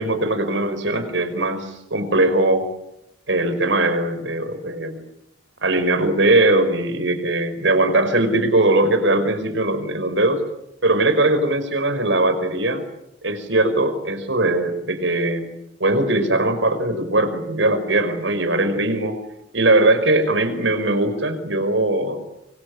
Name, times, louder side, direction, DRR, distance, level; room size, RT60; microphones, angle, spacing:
voice 1, 0.0-2.7 3.3-5.0 5.6-10.4 10.8-12.8 13.2-15.5 15.8-19.2 19.5-22.3, right 2 dB, 80° right, 9 dB, 5.1 m, -20 dB
25.5 x 24.5 x 8.5 m, 0.82 s
head